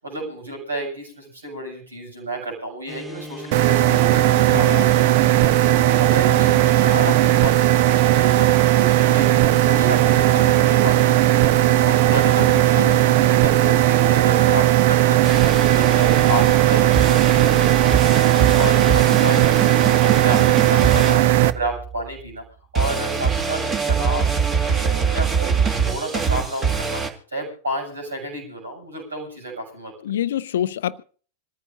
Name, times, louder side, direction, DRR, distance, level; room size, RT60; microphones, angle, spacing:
voice 1, 0.0-22.4 22.7-27.0 27.3-29.9, right 1 dB, 75° right, 7.3 m, -31 dB
sound 1, 2.9-19.9, left 1 dB, 5° left, 1.0 m, -36 dB
sound 2, 3.5-21.5, right 15 dB, 50° right, 0.7 m, -17 dB
voice 2, 4.5-4.8 12.7-13.0 30.0-31.0, left 10 dB, 60° left, 0.6 m, -26 dB
sound 3, 15.2-21.9 22.8-27.1, right 6 dB, 25° right, 2.3 m, -24 dB
26.5 x 14.5 x 2.7 m
figure-of-eight pair, 90°, 0 cm